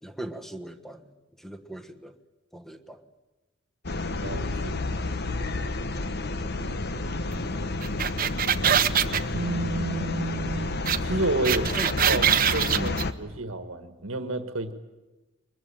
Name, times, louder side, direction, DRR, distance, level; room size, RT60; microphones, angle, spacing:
voice 1, 0.0-2.2 2.5-3.1 11.6-11.9 12.7-13.3, right 1 dB, ahead, 10 dB, 1.4 m, -40 dB
sound 1, 3.8-13.1, left 2 dB, 55° left, 1.2 m, -30 dB
voice 2, 4.2-4.8 9.3-10.7 11.0-11.7 12.0-12.9 13.2-14.7, right 2 dB, 80° right, 9 dB, 1.6 m, -30 dB
sound 2, 7.8-9.2 10.9-11.0 11.2-13.0, right 9 dB, 45° right, 1.0 m, -23 dB
24.0 x 21.5 x 8.9 m, 1.1 s
head